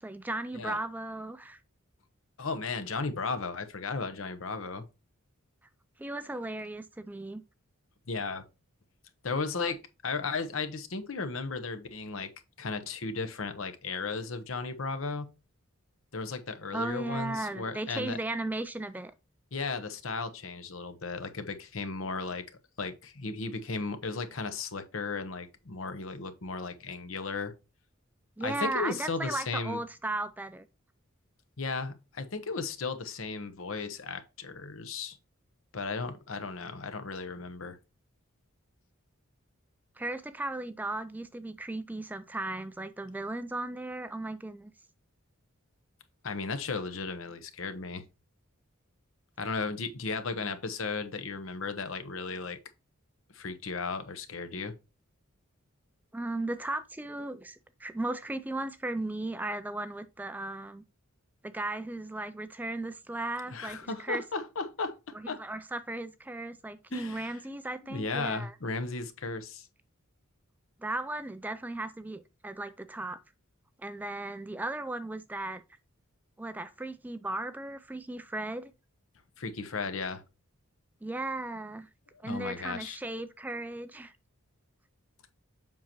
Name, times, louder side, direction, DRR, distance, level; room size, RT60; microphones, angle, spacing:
voice 1, 0.0-1.6 6.0-7.4 16.7-19.1 28.4-30.7 40.0-44.7 56.1-60.8 61.4-64.2 65.1-68.5 70.8-73.2 73.8-75.6 76.4-78.7 81.0-81.9 82.2-84.1, right 2 dB, 10° right, 0.3 m, -36 dB
voice 2, 2.4-4.9 8.1-8.4 9.2-12.3 12.6-15.3 16.1-18.2 19.5-22.4 22.8-27.5 28.4-29.8 31.6-35.2 35.7-37.8 46.2-48.0 49.4-52.6 53.3-54.7 63.5-65.4 66.9-67.4 67.8-69.7 79.4-80.2 82.2-83.0, left 4 dB, 70° left, 0.9 m, -35 dB
7.5 x 5.7 x 2.9 m
head